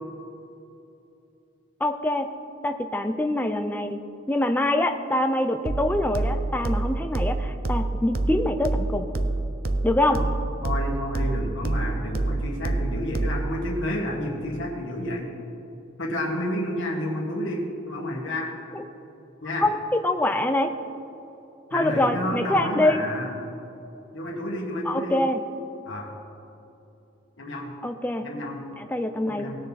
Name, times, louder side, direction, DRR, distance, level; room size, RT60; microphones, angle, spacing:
voice 1, 1.8-2.3 2.6-4.0 4.3-9.1 9.8-10.2 18.7-18.9 19.6-19.7 20.0-20.7 21.7-23.0 24.8-25.4 27.8-28.3 28.8-29.5, left 1 dB, 10° left, 6 dB, 0.5 m, -24 dB
sound 1, 5.7-13.7, right 2 dB, 50° right, 0.6 m, -27 dB
voice 2, 10.6-15.3 16.0-18.5 19.4-19.7 21.7-23.3 24.1-25.2 25.9-26.1 27.4-27.7 28.2-28.6 29.3-29.6, left 1 dB, 70° left, -2 dB, 1.8 m, -30 dB
19.0 x 6.6 x 4.1 m, 3.0 s
head